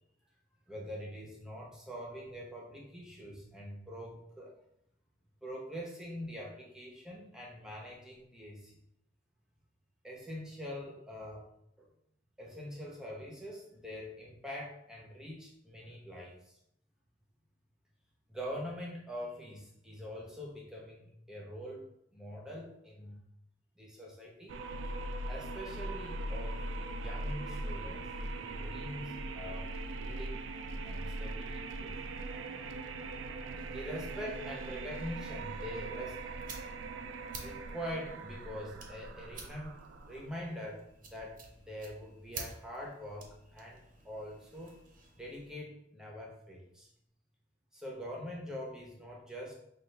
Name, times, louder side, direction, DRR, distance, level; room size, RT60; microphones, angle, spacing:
voice 1, 0.7-4.5 5.4-8.8 10.0-11.5 11.8-11.9 12.4-16.6 18.3-23.2 23.8-24.6 25.3-28.0 28.4-30.4 30.8-31.9 33.4-36.4 37.3-39.8 40.1-44.8 45.1-46.9 47.7-49.6, equal, 5° right, -3 dB, 0.9 m, -44 dB
sound 1, 24.5-40.4, right 2 dB, 75° right, 0.4 m, -40 dB
sound 2, 35.8-45.5, right 4 dB, 45° right, 0.7 m, -51 dB
5.2 x 2.5 x 3.3 m, 0.75 s
head